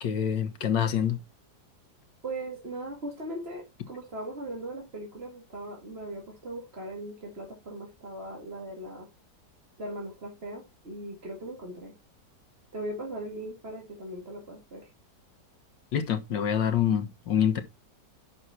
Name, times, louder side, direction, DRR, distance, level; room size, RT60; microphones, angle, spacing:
voice 1, 0.0-1.2 15.9-17.6, left 9 dB, 85° left, 1.9 m, -26 dB
voice 2, 2.2-9.1 9.8-11.9 12.7-14.9, right 1 dB, 35° right, 2.3 m, -39 dB
9.2 x 6.2 x 4.2 m
omnidirectional pair, 1.9 m